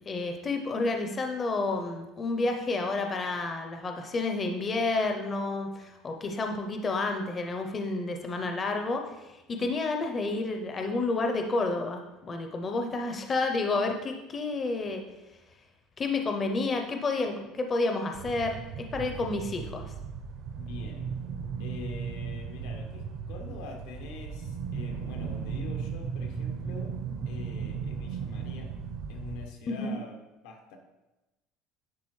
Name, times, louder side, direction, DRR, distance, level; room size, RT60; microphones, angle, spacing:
voice 1, 0.0-15.0 16.0-19.9 29.7-30.0, left 3 dB, 20° left, 4 dB, 0.5 m, -30 dB
sound 1, 18.1-29.5, right 6 dB, 50° right, 0.5 m, -36 dB
voice 2, 20.6-21.2 21.6-27.0 27.3-28.7 29.1-30.8, left 4 dB, 90° left, 3 dB, 1.1 m, -44 dB
10.5 x 3.7 x 3.1 m, 1.0 s
cardioid pair, 160°, 0 cm